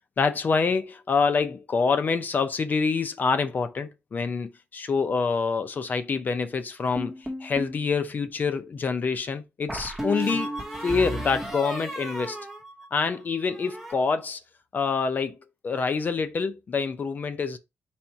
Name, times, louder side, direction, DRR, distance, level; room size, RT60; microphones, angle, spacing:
voice 1, 0.2-7.1 7.4-10.5 10.8-12.4 12.9-14.4 14.7-15.4 15.6-17.6, left 5 dB, 45° left, 0.5 m, -26 dB
sound 1, 7.0-7.8 9.7-13.2 13.5-14.0, right 1 dB, 5° right, 1.2 m, -34 dB
4.2 x 2.5 x 4.5 m
cardioid pair, 110°, 4 cm